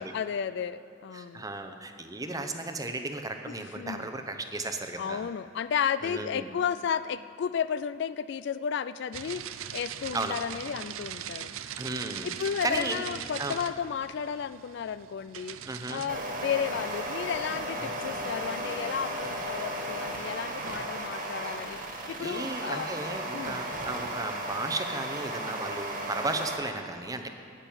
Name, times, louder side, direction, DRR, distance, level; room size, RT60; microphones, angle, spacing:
voice 1, 0.1-1.4 3.5-4.1 5.0-11.5 12.2-15.6 15.9-21.8 22.1-22.9 23.3-23.6, left 7 dB, 55° left, 14 dB, 0.3 m, -33 dB
voice 2, 1.1-5.3 6.0-6.5 10.1-10.4 11.8-12.3 12.6-13.0 13.4-13.5 15.7-16.0 17.8-17.9 22.1-27.3, right 2 dB, 15° right, 6 dB, 0.8 m, -35 dB
sound 1, 9.1-16.1, right 10 dB, 85° right, 0.5 m, -40 dB
sound 2, 16.1-26.6, right 1 dB, 40° right, 1.7 m, -35 dB
10.5 x 8.9 x 8.8 m, 2.8 s
head